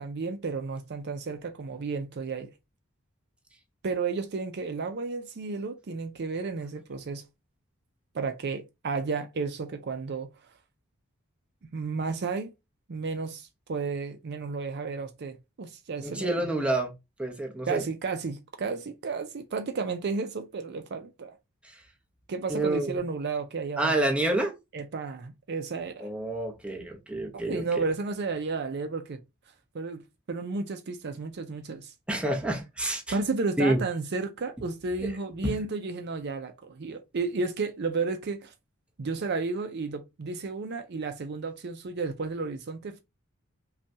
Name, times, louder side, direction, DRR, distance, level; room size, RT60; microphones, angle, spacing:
voice 1, 0.0-2.5 3.8-7.2 8.1-10.3 11.7-12.5 12.9-16.5 17.7-21.4 22.3-23.9 24.7-26.1 27.3-29.2 29.7-31.9 33.1-38.5 39.0-43.0, right 4 dB, 50° right, 0.5 m, -32 dB
voice 2, 16.0-16.9 17.2-17.8 21.6-21.8 22.5-23.0 23.8-24.5 26.0-27.6 32.1-33.1 33.6-33.8 35.0-35.1, right 1 dB, 5° right, 0.8 m, -28 dB
5.6 x 2.3 x 2.7 m
head